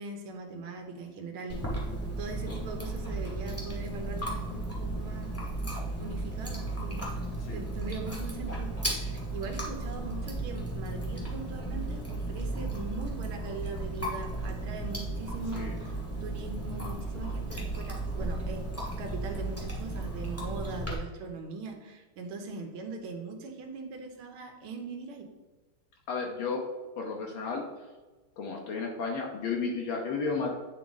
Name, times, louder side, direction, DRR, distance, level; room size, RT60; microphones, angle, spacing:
voice 1, 0.0-1.6 2.2-5.4 6.0-8.7 9.1-18.6 19.0-25.3, right 3 dB, 80° right, 3 dB, 1.7 m, -41 dB
Chewing mastication, 1.5-20.9, right 2 dB, 10° left, 0.7 m, -35 dB
voice 2, 26.1-26.6 27.0-27.6 28.4-30.5, left 4 dB, 75° left, -1 dB, 1.6 m, -33 dB
9.2 x 3.6 x 3.9 m, 1.2 s
omnidirectional pair, 2.3 m